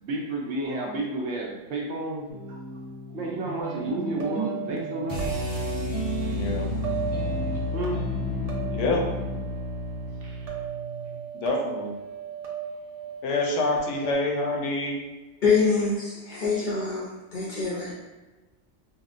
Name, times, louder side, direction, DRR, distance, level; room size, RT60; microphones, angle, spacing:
voice 1, 0.0-2.6 3.1-5.4 6.2-6.5 7.7-8.0 10.2-10.5 16.5-16.6, right 2 dB, 70° right, -2 dB, 0.9 m, -32 dB
sound 1, 2.3-9.4, right 2 dB, 20° left, 0.7 m, -35 dB
sound 2, 3.6-14.1, right 8 dB, 55° right, 0.4 m, -37 dB
sound 3, 5.1-11.2, left 2 dB, 40° right, 1.0 m, -32 dB
voice 2, 6.3-6.7 8.7-9.1 11.3-11.9 13.2-15.0, left 2 dB, 75° left, 0 dB, 0.9 m, -26 dB
voice 3, 15.4-17.9, left 4 dB, 55° left, -4 dB, 0.6 m, -25 dB
3.5 x 2.0 x 2.5 m, 1.2 s
omnidirectional pair, 1.2 m